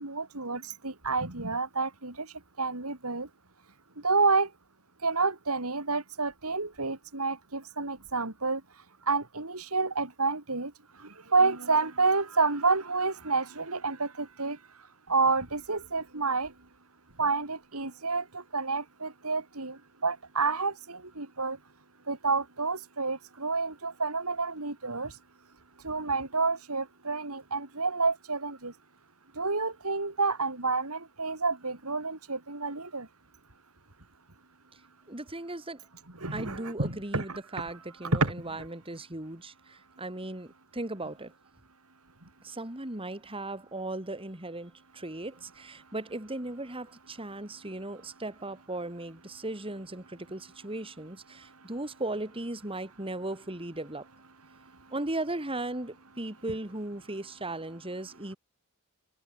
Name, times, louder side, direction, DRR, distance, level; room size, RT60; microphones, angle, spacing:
voice 1, 0.0-3.3 4.0-4.5 5.0-8.6 9.1-10.7 11.0-14.6 15.1-16.5 17.2-21.6 22.1-25.2 25.8-28.7 29.4-33.1 36.2-37.2 38.1-38.3, right 4 dB, 70° right, 3.7 m, -29 dB
voice 2, 35.1-35.8 36.3-41.3 42.4-54.1 54.9-58.4, right 2 dB, 25° right, 3.6 m, -37 dB
head